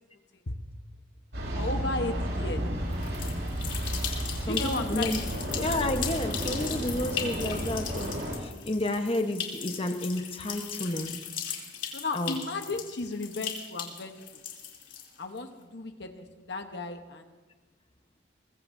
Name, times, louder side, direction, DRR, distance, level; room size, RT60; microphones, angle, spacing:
sound 1, 1.3-8.4, equal, 65° right, 5.3 m, -32 dB
voice 1, 1.5-2.6 4.4-5.4 11.9-14.4 15.2-17.3, left 2 dB, 65° left, 6 dB, 1.1 m, -35 dB
sound 2, 2.9-15.4, left 8 dB, 85° left, 3.4 m, -38 dB
voice 2, 4.5-5.2 5.5-8.1 8.4-11.5 12.1-12.3, left 1 dB, 30° left, 6 dB, 1.1 m, -31 dB
23.0 x 21.5 x 2.7 m, 1.3 s
head